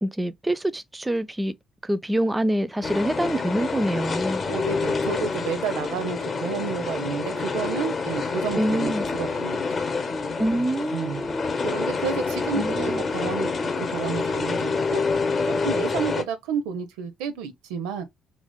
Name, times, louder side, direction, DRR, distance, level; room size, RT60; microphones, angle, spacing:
voice 1, 0.0-1.5 1.8-4.4 8.6-9.0 10.4-11.5 12.6-13.0, right 1 dB, 15° right, 0.5 m, -26 dB
sound 1, 2.8-16.2, left 4 dB, 40° left, 0.8 m, -27 dB
voice 2, 4.5-9.8 10.5-10.6 10.9-11.2 11.6-13.5 13.8-15.0 15.5-18.0, right 6 dB, 70° right, 0.5 m, -31 dB
2.9 x 2.7 x 3.5 m
figure-of-eight pair, 45°, 0 cm